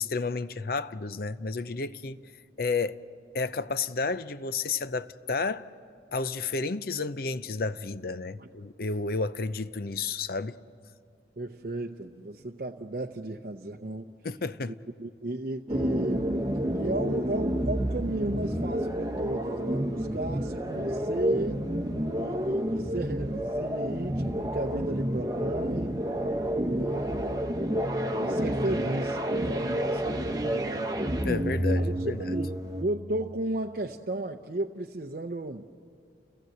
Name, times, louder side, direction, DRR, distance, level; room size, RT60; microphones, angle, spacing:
voice 1, 0.0-2.2 2.6-3.0 3.3-5.7 6.1-10.6 14.2-14.7 31.2-32.4, left 4 dB, 55° left, 0.6 m, -31 dB
voice 2, 11.4-14.1 14.7-16.3 16.7-21.7 22.1-26.0 26.6-27.5 28.1-30.9 31.8-35.7, right 2 dB, 50° right, 0.6 m, -34 dB
sound 1, 15.7-32.8, equal, 20° right, 0.9 m, -29 dB
30.0 x 16.0 x 7.9 m
head